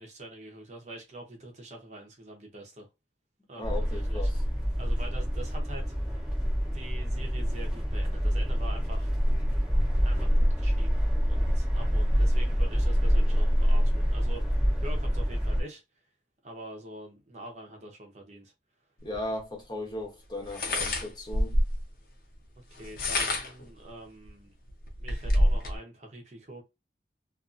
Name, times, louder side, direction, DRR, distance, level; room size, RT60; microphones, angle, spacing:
voice 1, 0.0-2.9 3.5-4.3 4.8-5.9 6.7-9.1 10.0-11.0 11.3-15.8 16.4-18.5 22.6-24.5 25.0-26.6, right 1 dB, 40° right, 0.8 m, -45 dB
voice 2, 3.6-4.4 19.0-21.6, left 1 dB, 25° left, 0.9 m, -37 dB
sound 1, 3.6-15.6, equal, 5° right, 0.9 m, -26 dB
sound 2, 19.1-19.2 20.5-21.8 22.8-23.6 24.3-24.4 24.7-25.8, left 1 dB, 55° left, 0.7 m, -27 dB
2.6 x 2.5 x 2.5 m
head